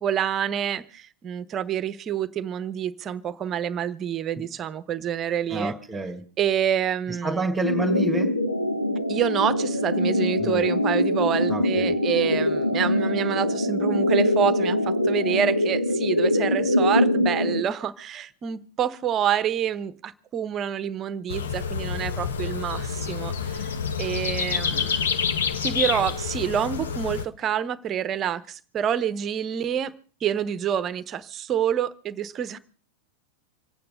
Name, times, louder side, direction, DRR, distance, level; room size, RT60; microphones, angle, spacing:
voice 1, 0.0-5.7 6.4-7.4 9.1-25.1 25.6-29.9 30.2-32.6, right 9 dB, 30° right, 0.9 m, -27 dB
voice 2, 5.5-6.2 7.1-8.4 10.4-10.6 11.5-11.9, right 2 dB, 5° right, 1.8 m, -29 dB
sound 1, 7.6-17.6, left 1 dB, 85° left, 1.0 m, -23 dB
sound 2, 8.5-15.5, equal, 80° right, 0.7 m, -37 dB
sound 3, 21.3-27.2, left 6 dB, 65° left, 1.1 m, -28 dB
26.0 x 9.1 x 5.2 m
figure-of-eight pair, 90°, 0 cm